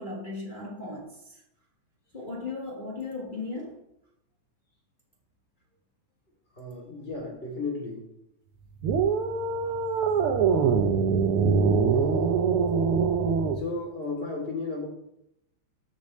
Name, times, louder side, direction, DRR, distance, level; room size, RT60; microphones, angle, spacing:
voice 1, 0.0-1.4 2.1-3.8, left 3 dB, 35° left, -3 dB, 0.7 m, -36 dB
voice 2, 6.6-8.1 11.9-12.4 13.5-14.9, left 3 dB, 20° left, -1 dB, 2.8 m, -34 dB
sound 1, 8.8-13.6, right 5 dB, 90° right, 1.2 m, -23 dB
13.5 x 8.6 x 3.2 m, 0.80 s
omnidirectional pair, 3.6 m